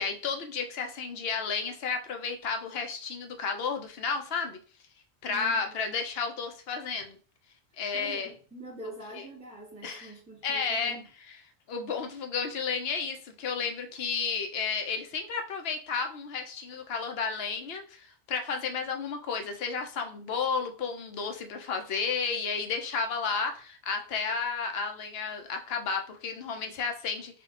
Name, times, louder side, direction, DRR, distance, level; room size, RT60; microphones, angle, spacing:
voice 1, 0.0-4.6 5.2-7.2 7.8-8.3 9.1-9.3 9.8-10.1 10.4-11.0 11.7-27.4, left 5 dB, 70° left, 0.9 m, -32 dB
voice 2, 5.3-5.7 7.9-11.1, right 1 dB, 5° left, 1.1 m, -45 dB
3.6 x 2.4 x 3.6 m
omnidirectional pair, 1.1 m